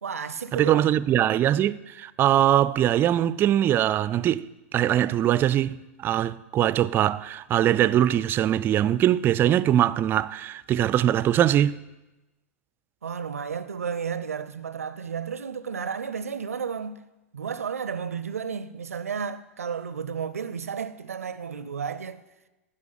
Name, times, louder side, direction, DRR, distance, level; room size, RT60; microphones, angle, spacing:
voice 1, 0.0-0.8 13.0-17.0 17.3-22.2, right 6 dB, 90° right, 0.5 m, -32 dB
voice 2, 0.5-11.8, right 11 dB, 30° right, 0.3 m, -22 dB
10.5 x 5.9 x 7.5 m
hypercardioid pair, 105°, 8 cm